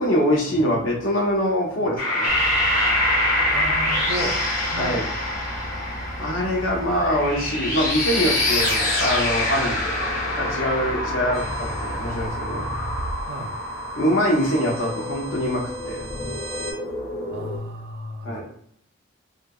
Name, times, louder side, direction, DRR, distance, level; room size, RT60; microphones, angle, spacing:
voice 1, 0.0-2.4 4.8-5.0 6.2-9.8 10.4-11.4 11.8-12.7 13.9-16.0 18.2-18.4, equal, 75° left, -1 dB, 0.8 m, -23 dB
sound 1, 2.0-17.6, left 1 dB, 40° left, 1.2 m, -26 dB
Bus / Idling, 2.3-12.3, equal, 20° left, 0.4 m, -36 dB
voice 2, 3.5-4.4 4.7-5.1 7.1-7.2 13.3-13.5 17.3-18.4, right 1 dB, 55° right, 5 dB, 0.4 m, -33 dB
sound 2, 11.3-16.7, right 2 dB, 85° right, 0.7 m, -36 dB
2.8 x 2.6 x 2.2 m, 0.68 s
head